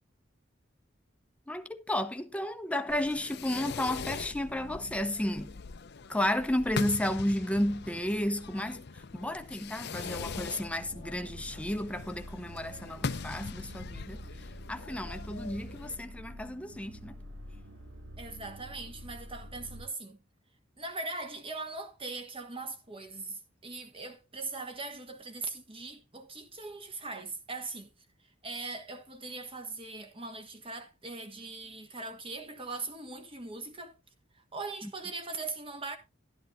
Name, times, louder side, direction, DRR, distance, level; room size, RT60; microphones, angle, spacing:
voice 1, 1.5-5.6 6.1-14.2 14.7-17.2 34.8-34.9, left 1 dB, 5° left, 0.8 m, -32 dB
Fireworks, 2.9-16.0, left 4 dB, 60° left, 0.7 m, -41 dB
sound 1, 10.2-19.9, equal, 80° right, 3.2 m, -47 dB
voice 2, 18.2-20.2 20.8-27.9 28.4-33.9 34.3-36.0, right 3 dB, 30° right, 1.4 m, -40 dB
12.0 x 10.5 x 2.6 m
head